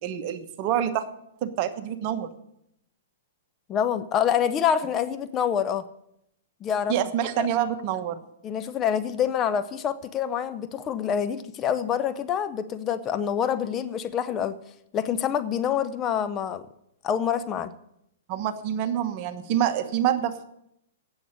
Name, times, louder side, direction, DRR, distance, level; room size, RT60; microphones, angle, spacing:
voice 1, 0.0-1.1 1.4-2.3 6.9-8.2 18.3-20.5, right 10 dB, 45° right, 1.1 m, -26 dB
voice 2, 3.7-5.8 6.6-6.9 7.4-7.5 8.4-14.6 14.9-16.6 17.0-17.7, left 8 dB, 25° left, 0.6 m, -26 dB
9.1 x 8.0 x 8.7 m
hypercardioid pair, 120°, 0 cm